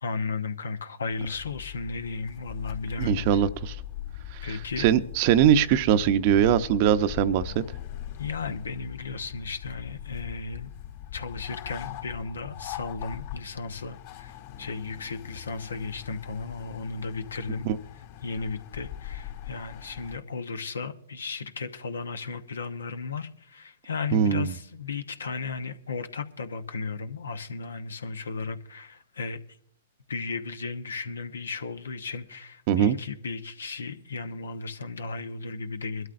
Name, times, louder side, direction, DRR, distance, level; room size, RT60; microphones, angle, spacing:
voice 1, 0.0-3.4 4.4-4.9 8.2-10.7 11.1-17.7 18.2-29.4 30.1-36.1, left 4 dB, 85° left, 0.9 m, -35 dB
sound 1, 1.1-20.2, left 12 dB, 55° left, 3.6 m, -41 dB
voice 2, 3.0-3.8 4.3-7.6 17.6-17.8 24.1-24.5 32.7-33.0, right 9 dB, 50° right, 0.7 m, -22 dB
23.0 x 12.5 x 2.6 m
hypercardioid pair, 120°, 0 cm